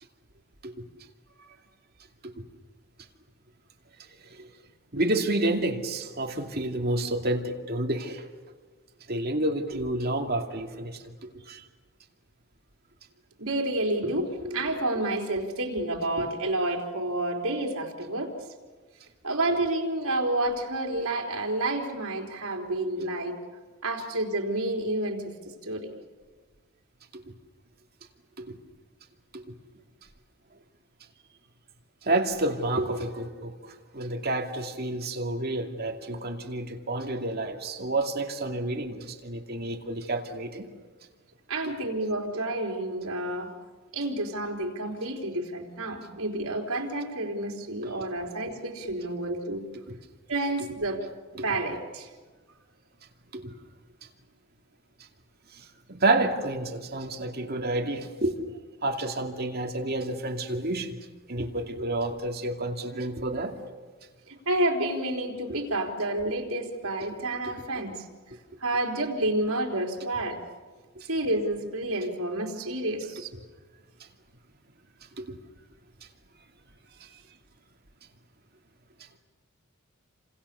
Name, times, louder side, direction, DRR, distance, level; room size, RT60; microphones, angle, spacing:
voice 1, 4.9-8.2 9.1-11.0 11.5-11.6 28.5-28.6 29.3-29.4 32.0-40.7 47.8-47.9 49.9-50.0 51.3-51.4 53.3-53.5 55.5-58.3 58.8-61.0 61.3-63.5 71.0-71.1 75.2-75.4 77.0-77.1, right 2 dB, 45° right, 2 dB, 2.6 m, -29 dB
voice 2, 13.4-18.3 19.2-23.4 23.8-25.9 41.5-43.5 43.9-49.6 50.3-51.0 51.4-52.1 64.3-68.0 68.6-70.4 71.0-73.3, right 1 dB, 75° right, 1 dB, 4.1 m, -29 dB
29.0 x 27.0 x 7.0 m, 1.4 s
head